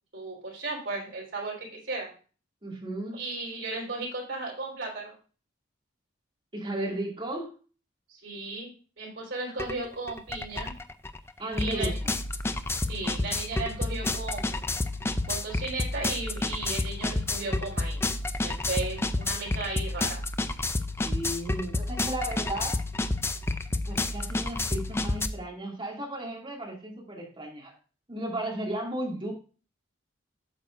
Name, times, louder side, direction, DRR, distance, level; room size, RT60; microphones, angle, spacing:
voice 1, 0.1-2.1 3.1-5.1 8.1-10.7 11.6-12.0 12.9-14.6 15.3-18.0 18.4-20.2, right 3 dB, 70° right, -4 dB, 3.5 m, -35 dB
voice 2, 2.6-3.2 6.5-7.5 11.4-12.1 21.0-22.8 23.9-27.7 28.1-29.3, right 1 dB, 25° right, -2 dB, 2.3 m, -34 dB
sound 1, 9.6-9.7 10.1-25.3, left 2 dB, 15° left, 0.4 m, -30 dB
9.0 x 6.7 x 2.5 m, 0.37 s
head